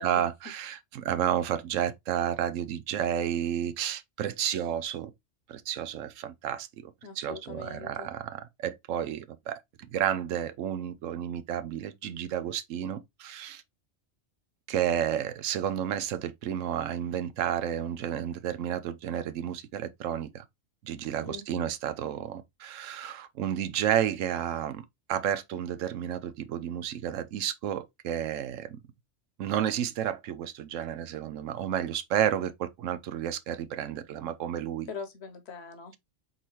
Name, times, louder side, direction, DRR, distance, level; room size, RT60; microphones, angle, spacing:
voice 1, 0.0-5.1 5.5-9.6 9.9-13.6 14.7-20.4 20.8-28.8 29.4-34.9, right 10 dB, 80° right, 1.0 m, -31 dB
voice 2, 7.0-8.1 21.2-21.7 34.9-36.0, left 5 dB, 60° left, 1.0 m, -42 dB
4.1 x 3.9 x 3.0 m
omnidirectional pair, 1.3 m